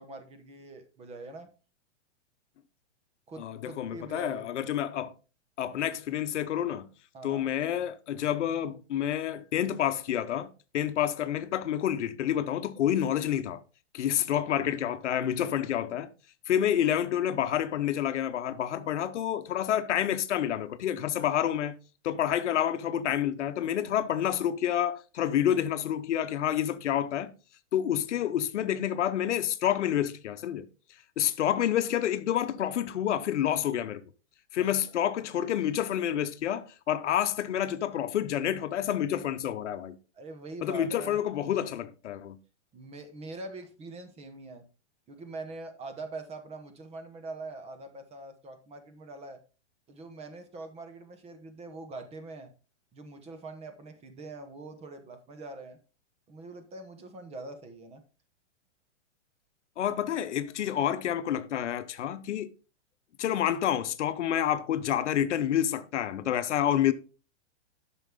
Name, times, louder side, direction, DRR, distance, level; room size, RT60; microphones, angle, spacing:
voice 1, 0.0-1.5 3.3-4.5 7.1-7.5 14.4-14.5 31.4-31.7 34.6-34.7 40.1-41.2 42.7-44.7 45.1-49.4 49.9-52.5 52.9-55.8 56.3-58.0, right 2 dB, 15° right, 1.0 m, -43 dB
voice 2, 3.4-5.1 5.6-6.9 7.2-13.6 13.9-16.1 16.5-21.7 22.0-27.3 27.7-30.6 31.2-34.0 34.5-39.9 40.6-42.4 59.8-62.5 63.2-66.9, left 10 dB, 75° left, 0.9 m, -28 dB
9.0 x 6.1 x 3.7 m
hypercardioid pair, 140°, 36 cm